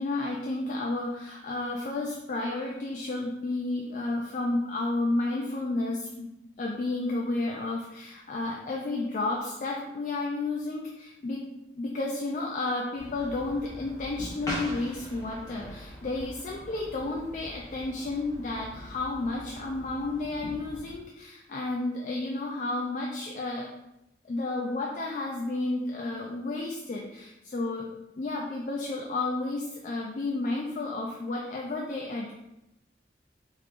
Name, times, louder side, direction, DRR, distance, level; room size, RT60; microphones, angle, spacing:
voice 1, 0.0-11.4 11.8-23.7 24.2-27.9 28.2-32.3, left 2 dB, 45° left, -2 dB, 0.3 m, -32 dB
sound 1, 13.0-20.9, equal, 20° left, 0.8 m, -42 dB
3.5 x 3.1 x 2.4 m, 0.90 s
head